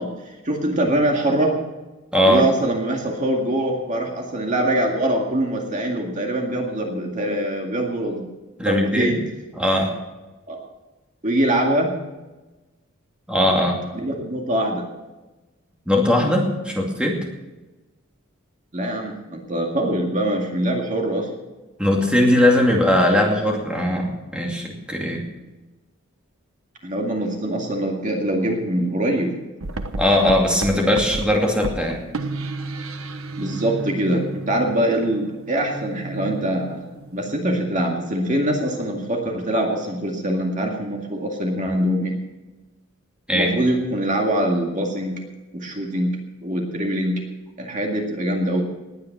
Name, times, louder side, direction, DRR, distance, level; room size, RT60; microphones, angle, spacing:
voice 1, 0.0-1.5 2.2-8.3 8.6-9.2 10.5-10.6 11.2-11.9 13.9-14.9 18.7-21.3 26.8-29.3 32.2-32.3 33.4-36.8 37.1-42.2 43.3-45.2 45.5-47.2 47.6-48.6, right 1 dB, 35° right, 1 dB, 2.1 m, -23 dB
voice 2, 2.1-2.4 8.6-9.2 9.5-9.9 13.3-13.8 15.9-17.2 21.8-25.2 29.9-32.0 43.3-43.5, left 1 dB, 5° right, 0 dB, 2.4 m, -19 dB
sound 1, 29.6-37.4, right 2 dB, 80° right, 1.1 m, -32 dB
19.5 x 9.6 x 5.9 m, 1.1 s
head